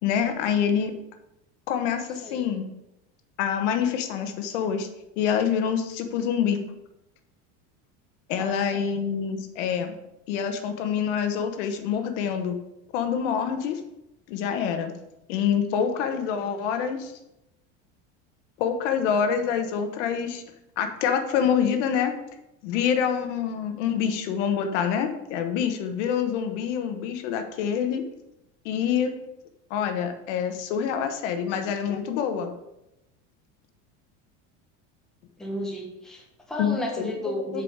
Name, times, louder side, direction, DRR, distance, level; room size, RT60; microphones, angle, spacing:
voice 1, 0.0-0.9 1.7-2.7 3.4-4.9 5.2-6.6 8.3-9.9 10.3-12.6 12.9-13.8 14.3-14.9 15.3-17.1 18.6-20.4 20.8-22.1 22.6-28.0 28.6-29.1 29.7-32.5 36.6-37.1 37.5-37.6, left 7 dB, 80° left, 7 dB, 1.2 m, -26 dB
voice 2, 8.4-8.9 35.4-37.6, left 1 dB, ahead, -2 dB, 1.0 m, -33 dB
7.9 x 4.9 x 5.0 m, 0.86 s
cardioid pair, 175°, 35 cm